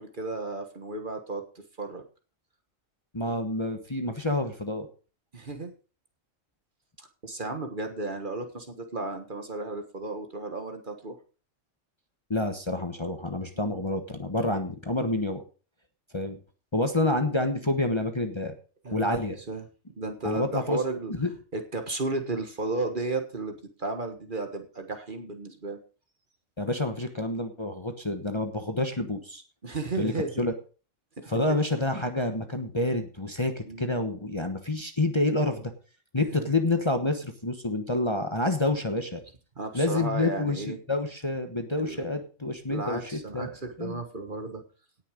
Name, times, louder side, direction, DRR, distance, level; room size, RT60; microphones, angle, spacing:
voice 1, 0.0-1.4 1.8-2.0 5.3-5.7 7.2-11.2 13.6-13.8 18.8-19.2 19.5-19.7 20.0-21.1 21.5-25.8 29.6-30.3 31.2-31.6 33.7-33.9 36.3-36.5 39.6-40.8 41.8-42.1 42.7-44.6, right 3 dB, 40° right, 5 dB, 1.6 m, -34 dB
voice 2, 3.1-4.9 12.3-15.4 16.1-16.4 16.7-18.5 18.9-19.3 20.2-20.8 21.1-21.3 26.6-29.4 30.0-30.5 31.3-35.7 36.1-39.2 39.7-43.5 43.8-44.0, left 2 dB, 20° left, 6 dB, 1.2 m, -28 dB
17.5 x 6.6 x 5.1 m, 0.37 s
omnidirectional pair, 1.4 m